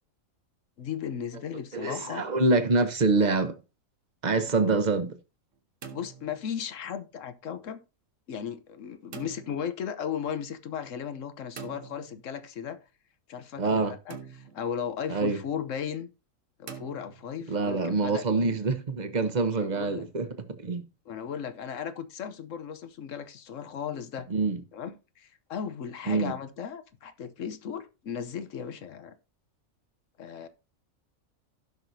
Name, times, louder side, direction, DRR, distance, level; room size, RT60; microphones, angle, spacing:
voice 1, 0.8-2.3 4.6-4.8 5.9-7.8 8.3-12.8 13.3-16.1 16.6-18.6 19.6-20.0 21.1-24.3 24.7-29.1 30.2-30.5, left 8 dB, 65° left, 1.2 m, -36 dB
voice 2, 1.7-3.6 4.2-5.2 13.6-14.0 15.1-15.4 17.5-20.8 24.3-24.6 26.1-26.3, right 3 dB, 35° right, 1.0 m, -26 dB
sound 1, 5.5-6.8 9.1-9.7 11.6-12.5 14.1-14.8 16.7-17.5, right 6 dB, 65° right, 1.4 m, -45 dB
16.0 x 5.9 x 2.7 m
omnidirectional pair, 1.4 m